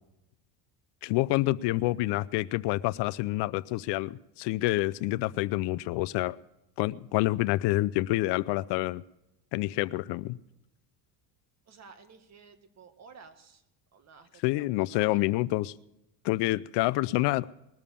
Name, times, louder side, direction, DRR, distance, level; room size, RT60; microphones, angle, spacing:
voice 1, 1.0-6.4 6.8-9.0 9.5-10.4 14.4-15.7 16.2-17.5, left 18 dB, 65° left, 18 dB, 0.6 m, -27 dB
voice 2, 11.7-13.6 13.9-15.4, right 5 dB, 35° right, 7 dB, 1.9 m, -53 dB
21.0 x 7.2 x 6.9 m, 0.90 s
supercardioid pair, 110°, 46 cm